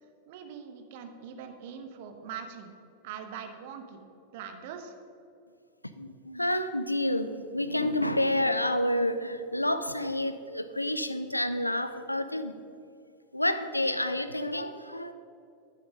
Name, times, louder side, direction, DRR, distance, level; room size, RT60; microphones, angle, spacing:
voice 1, 0.3-2.7 3.0-4.0 4.3-5.0, right 7 dB, 50° right, 6 dB, 1.0 m, -42 dB
voice 2, 6.0-12.5 13.3-15.1, left 1 dB, 85° left, 11 dB, 0.5 m, -29 dB
11.0 x 6.5 x 5.2 m, 2.6 s
figure-of-eight pair, 90°, 0 cm